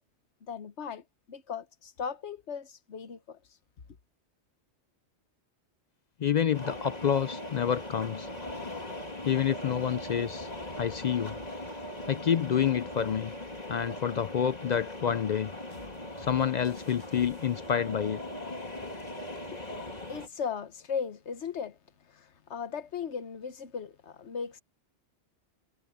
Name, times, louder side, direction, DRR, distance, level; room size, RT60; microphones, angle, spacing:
voice 1, 0.4-3.4 19.5-19.6 20.1-21.8 22.1-24.6, left 6 dB, 75° left, 1.4 m, -37 dB
voice 2, 6.2-8.3 9.2-10.5 10.8-11.4 12.1-13.4 13.7-15.5 16.2-18.2, left 8 dB, 60° left, 0.5 m, -28 dB
sound 1, 6.5-20.3, left 1 dB, 35° left, 2.8 m, -40 dB
sound 2, 15.7-18.0, right 1 dB, 60° right, 5.8 m, -55 dB
omnidirectional pair, 1.2 m